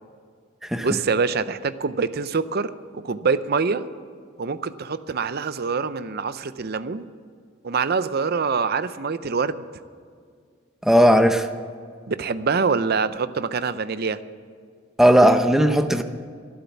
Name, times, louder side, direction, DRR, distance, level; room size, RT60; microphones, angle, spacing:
voice 1, 0.8-3.8 4.4-7.1 7.6-9.6 12.1-14.2, right 5 dB, 55° right, 13 dB, 0.6 m, -25 dB
voice 2, 10.8-11.5 15.0-16.0, equal, ahead, 8 dB, 0.7 m, -16 dB
12.5 x 11.5 x 7.1 m, 2.1 s
head